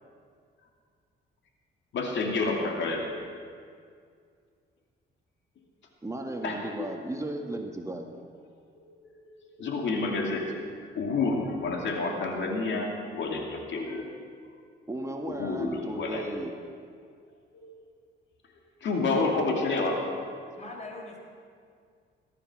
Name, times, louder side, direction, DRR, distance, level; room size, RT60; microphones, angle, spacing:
voice 1, 1.9-3.1 6.4-6.9 8.8-9.0 9.3-10.6 10.9-14.1 15.3-16.2 17.5-17.7 18.8-20.0 20.3-20.5, left 3 dB, 65° left, 1 dB, 2.5 m, -29 dB
voice 2, 6.0-8.1 14.9-16.5, right 1 dB, 15° right, 3 dB, 1.6 m, -35 dB
voice 3, 20.6-21.2, left 2 dB, 35° left, 1 dB, 4.2 m, -42 dB
18.5 x 12.5 x 6.1 m, 2.2 s
cardioid pair, 90°, 20 cm